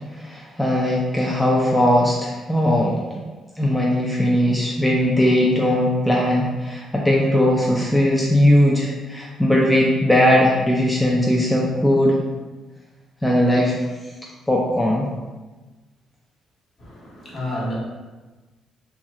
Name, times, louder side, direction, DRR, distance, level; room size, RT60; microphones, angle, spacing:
voice 1, 0.2-3.2 3.6-12.2 13.2-13.8 14.5-15.1, left 1 dB, 10° left, -3 dB, 0.4 m, -19 dB
voice 2, 16.8-17.7, left 1 dB, 50° left, -5 dB, 1.1 m, -30 dB
2.7 x 2.3 x 2.9 m, 1.2 s
cardioid pair, 90°, 0 cm